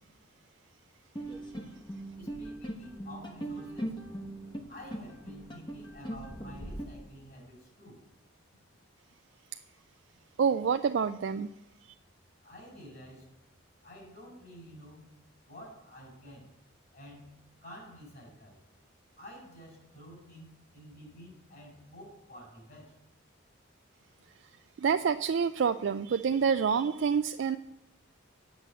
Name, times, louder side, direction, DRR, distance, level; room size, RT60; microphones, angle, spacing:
sound 1, 1.2-6.9, right 1 dB, 20° left, 1.0 m, -40 dB
voice 1, 2.2-4.0 4.7-8.0 12.4-13.3 13.8-15.1 15.4-16.5 16.9-18.6 19.2-23.0, equal, 45° left, 0 dB, 4.6 m, -50 dB
voice 2, 10.4-11.5 24.8-27.6, right 6 dB, 60° right, 8 dB, 0.3 m, -27 dB
9.2 x 6.2 x 8.0 m, 0.86 s
head